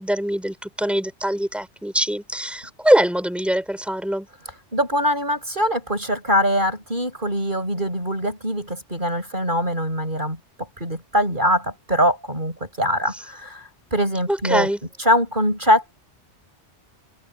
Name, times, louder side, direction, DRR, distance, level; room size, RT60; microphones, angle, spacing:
voice 1, 0.0-4.3 14.3-14.8, equal, ahead, 6.9 m, -23 dB
voice 2, 4.7-10.4 10.8-14.7 15.0-15.9, equal, 45° right, 7.3 m, -22 dB
open air
omnidirectional pair, 1.2 m